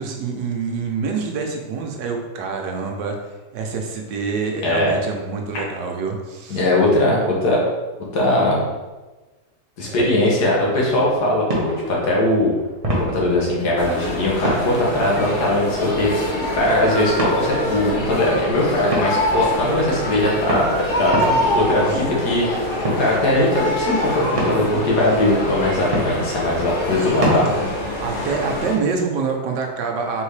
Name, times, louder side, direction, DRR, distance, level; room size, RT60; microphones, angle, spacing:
voice 1, 0.0-3.1 3.5-6.6 9.8-10.1 21.2-21.4 21.9-22.3 26.9-27.4 28.0-30.2, right 5 dB, 80° right, 2 dB, 1.3 m, -26 dB
voice 2, 4.6-4.9 6.5-7.6 8.1-8.6 9.8-12.5 13.0-16.1 16.5-20.7 20.9-21.1 21.5-22.7 23.0-27.7, left 1 dB, 65° left, -3 dB, 1.6 m, -20 dB
sound 1, 10.3-27.9, right 1 dB, 35° right, 0.5 m, -30 dB
sound 2, 13.8-28.8, left 1 dB, 45° left, 0.8 m, -25 dB
4.0 x 3.6 x 3.2 m, 1.2 s
omnidirectional pair, 1.9 m